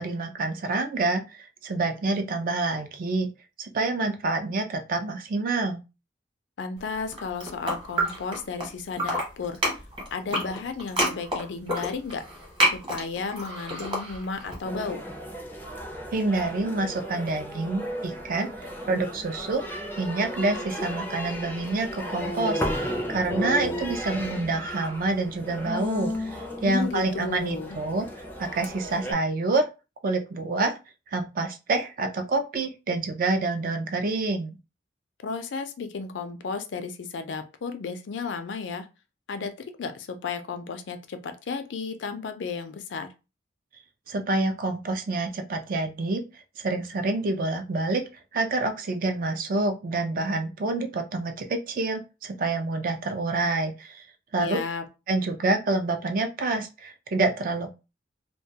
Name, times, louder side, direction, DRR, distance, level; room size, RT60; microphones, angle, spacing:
voice 1, 0.0-3.3 3.6-5.8 16.1-19.6 20.0-28.1 28.4-29.7 30.0-30.8 31.1-34.5 44.1-46.2 46.6-48.0 48.3-54.0 54.3-54.6 55.1-57.7, right 3 dB, 50° right, 6 dB, 0.4 m, -27 dB
voice 2, 6.6-9.6 10.1-12.2 12.6-15.0 26.6-27.8 35.2-38.9 39.3-39.5 39.8-43.1 54.4-54.9, left 5 dB, 80° left, 8 dB, 0.4 m, -33 dB
sound 1, 7.0-8.7 8.9-14.6, right 1 dB, 30° right, 1.0 m, -28 dB
sound 2, 14.7-29.1, equal, 10° left, 0.4 m, -34 dB
2.2 x 2.2 x 2.7 m, 0.29 s
head